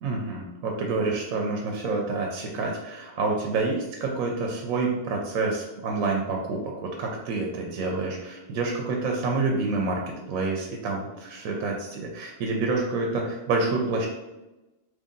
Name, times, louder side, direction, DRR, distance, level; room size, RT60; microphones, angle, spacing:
voice 1, 0.0-10.0 10.3-14.1, right 3 dB, 75° right, 0 dB, 1.0 m, -28 dB
3.1 x 2.6 x 3.7 m, 1.0 s
omnidirectional pair, 1.5 m